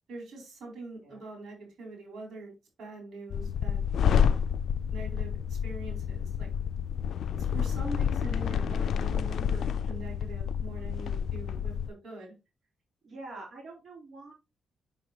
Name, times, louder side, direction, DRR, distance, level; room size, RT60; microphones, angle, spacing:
voice 1, 0.1-2.5 2.8-4.4 4.9-6.5 7.4-12.3, right 3 dB, 80° right, 0 dB, 4.2 m, -43 dB
sound 1, 3.3-11.9, left 8 dB, 75° left, 0.3 m, -29 dB
voice 2, 13.0-14.3, right 2 dB, 55° right, -3 dB, 3.6 m, -45 dB
7.5 x 6.6 x 2.8 m, 0.26 s
cardioid pair, 95°, 0 cm